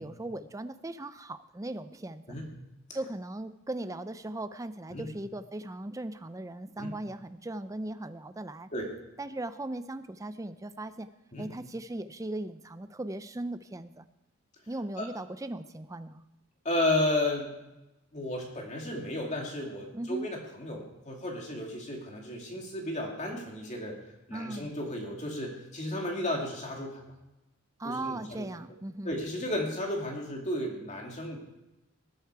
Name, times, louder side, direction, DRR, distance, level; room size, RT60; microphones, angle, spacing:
voice 1, 0.0-2.2 2.9-8.7 9.2-11.1 11.4-14.0 14.7-16.2 19.9-20.3 24.3-24.7 27.8-29.1, right 1 dB, 15° right, 11 dB, 0.4 m, -38 dB
voice 2, 16.6-17.5 18.1-24.0 24.3-27.0 27.8-28.5 29.0-31.4, left 1 dB, 30° left, 0 dB, 2.5 m, -33 dB
20.0 x 8.1 x 4.7 m, 0.97 s
head